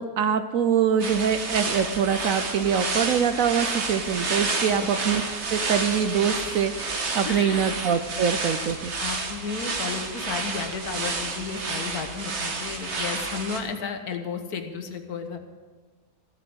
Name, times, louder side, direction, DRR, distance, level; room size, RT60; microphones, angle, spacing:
voice 1, 0.0-5.2 5.5-8.9, right 7 dB, 65° right, 10 dB, 1.0 m, -24 dB
sound 1, 1.0-13.6, right 3 dB, 45° right, 1.6 m, -30 dB
voice 2, 7.2-7.7 9.0-15.4, left 5 dB, 70° left, 6 dB, 1.6 m, -33 dB
14.5 x 7.4 x 7.9 m, 1.4 s
omnidirectional pair, 1.7 m